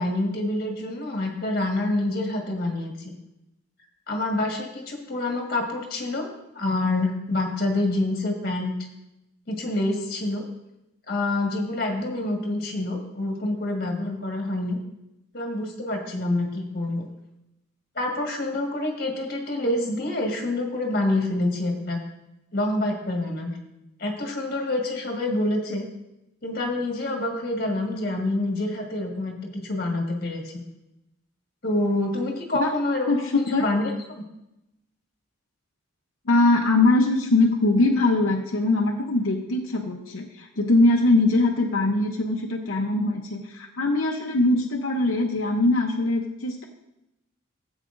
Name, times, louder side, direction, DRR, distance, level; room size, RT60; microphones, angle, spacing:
voice 1, 0.0-3.1 4.1-6.3 6.5-8.7 9.5-10.4 11.1-14.8 15.3-17.1 17.9-22.0 22.5-23.5 24.0-25.8 26.4-30.5 31.6-33.3 33.6-33.8, left 2 dB, 45° left, 0 dB, 1.7 m, -27 dB
voice 2, 33.1-33.6 36.2-46.6, left 2 dB, 75° left, 1 dB, 0.8 m, -22 dB
14.5 x 8.0 x 2.6 m, 0.90 s
head